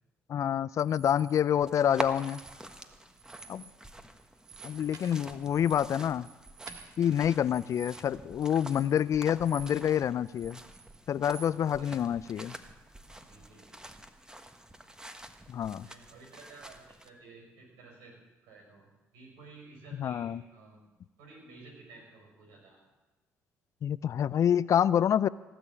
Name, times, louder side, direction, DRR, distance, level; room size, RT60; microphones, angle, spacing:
voice 1, 0.3-2.4 3.5-3.6 4.6-6.3 7.0-10.6 11.1-12.5 15.5-15.9 19.9-20.4 23.8-25.3, left 9 dB, 55° left, 19 dB, 0.4 m, -27 dB
sound 1, 0.8-1.4 2.0-2.9 3.1-3.8 4.1-10.0 10.2-11.5, right 7 dB, 60° right, 1.7 m, -51 dB
sound 2, 1.6-17.1, right 1 dB, 10° right, 1.3 m, -46 dB
voice 2, 2.5-3.0 7.0-7.2 11.4-12.3 13.1-14.0 15.8-18.2 18.4-20.8 21.2-22.8, right 3 dB, 80° right, 0 dB, 6.1 m, -53 dB
17.5 x 7.0 x 8.6 m, 1.1 s
hypercardioid pair, 55°, 7 cm